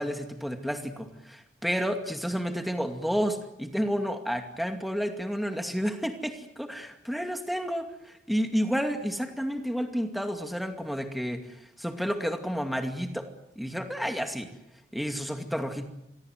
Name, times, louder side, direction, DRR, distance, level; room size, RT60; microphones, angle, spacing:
voice 1, 0.0-13.3 13.6-14.5 14.9-15.9, equal, ahead, 5 dB, 2.3 m, -31 dB
27.0 x 22.5 x 7.8 m, 0.84 s
head